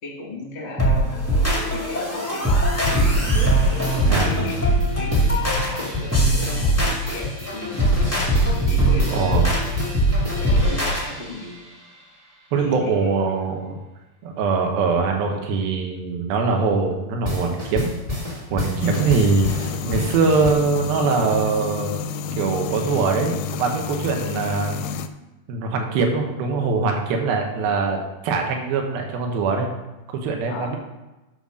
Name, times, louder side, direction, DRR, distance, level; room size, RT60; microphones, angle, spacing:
voice 1, 0.0-3.1 3.7-7.9 8.6-9.7 10.4-11.6 12.5-13.2 26.4-26.9 27.5-27.8 30.5-30.8, left 2 dB, 35° left, -2 dB, 1.1 m, -36 dB
sound 1, 0.8-11.0, right 1 dB, 20° left, 0.4 m, -21 dB
sound 2, 2.8-12.0 17.2-20.5, left 2 dB, 15° right, 1.2 m, -30 dB
voice 2, 4.0-4.5 9.1-9.5 12.5-13.8 14.2-17.9 18.5-19.5 19.8-22.0 22.4-24.8 25.5-29.7 30.1-30.8, right 4 dB, 80° right, 2 dB, 3.0 m, -22 dB
sound 3, 18.8-25.1, left 6 dB, 80° left, 2.0 m, -30 dB
11.0 x 4.2 x 6.3 m, 1.0 s
omnidirectional pair, 4.3 m